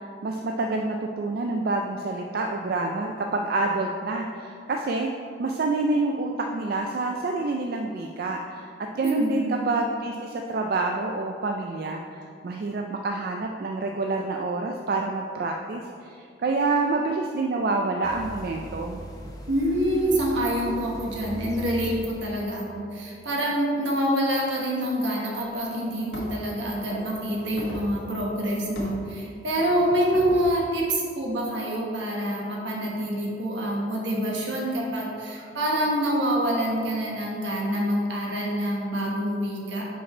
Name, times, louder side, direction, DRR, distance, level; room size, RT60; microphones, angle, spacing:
voice 1, 0.0-5.1 5.4-19.0, right 3 dB, 50° right, 2 dB, 0.3 m, -27 dB
voice 2, 9.0-9.6 19.5-39.9, equal, 75° right, -2 dB, 1.4 m, -26 dB
sound 1, 18.0-22.4, equal, 20° left, 0.6 m, -39 dB
sound 2, 25.4-25.5 26.1-26.5 26.9-28.0 28.8-29.1 29.6-30.6, left 2 dB, 80° left, 1.3 m, -37 dB
5.9 x 5.1 x 4.5 m, 2.3 s
head